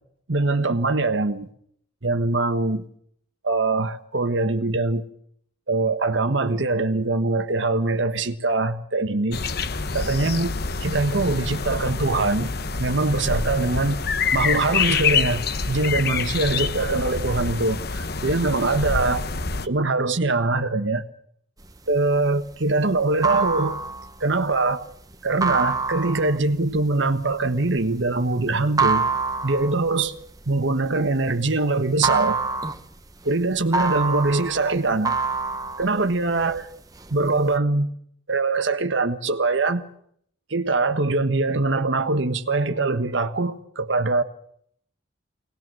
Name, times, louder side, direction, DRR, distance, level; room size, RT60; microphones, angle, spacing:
voice 1, 0.3-1.5 2.0-2.8 3.4-5.0 5.7-9.4 9.9-10.5 10.8-12.5 12.8-14.0 14.3-19.3 19.6-21.0 21.9-23.8 24.2-24.9 25.2-29.1 29.4-30.2 30.5-32.4 33.2-35.2 35.8-36.7 37.1-37.9 38.3-39.8 40.5-44.2, right 3 dB, 70° right, 1.3 m, -23 dB
sound 1, 9.3-19.7, left 5 dB, 55° left, 1.0 m, -26 dB
sound 2, 21.7-31.5 31.8-36.6 36.9-37.6, right 4 dB, 20° right, 1.0 m, -26 dB
24.0 x 19.0 x 7.7 m
head